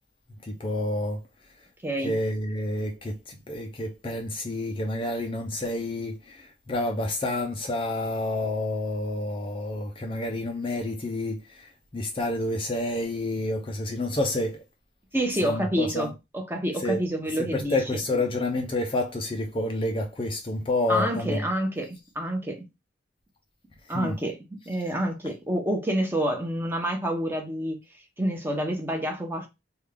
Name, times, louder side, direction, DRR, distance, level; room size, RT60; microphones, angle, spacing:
voice 1, 0.4-1.2 2.0-14.6 15.4-16.1 16.8-17.0 17.4-21.4 23.9-24.1, left 1 dB, 25° left, 0.5 m, -29 dB
voice 2, 1.8-2.2 15.1-18.0 20.9-22.6 23.9-24.4 24.7-27.8 28.2-29.5, right 1 dB, 10° right, 0.8 m, -28 dB
3.5 x 2.3 x 3.2 m
head